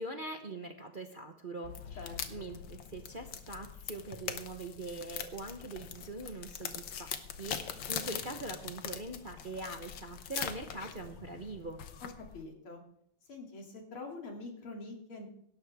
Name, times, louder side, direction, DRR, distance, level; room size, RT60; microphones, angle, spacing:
voice 1, 0.0-11.8, right 2 dB, 35° right, 4 dB, 0.8 m, -43 dB
sound 1, 1.6-12.4, left 8 dB, 65° left, 1.7 m, -42 dB
voice 2, 2.0-2.5 12.0-12.8 13.3-15.3, left 3 dB, 90° left, 1 dB, 3.5 m, -45 dB
17.5 x 12.5 x 3.5 m, 0.72 s
omnidirectional pair, 2.3 m